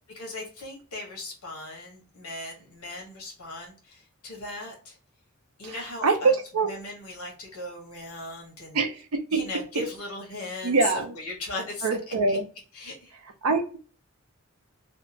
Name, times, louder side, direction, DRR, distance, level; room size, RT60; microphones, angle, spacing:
voice 1, 0.1-5.0 5.6-8.8 9.3-12.4 12.7-13.2, left 2 dB, 75° left, 0 dB, 1.0 m, -38 dB
voice 2, 6.0-6.7 8.7-9.4 9.8-9.9 10.6-11.1 11.8-12.4 13.4-13.8, right 4 dB, 90° right, 6 dB, 0.5 m, -24 dB
2.7 x 2.2 x 2.6 m, 0.38 s
head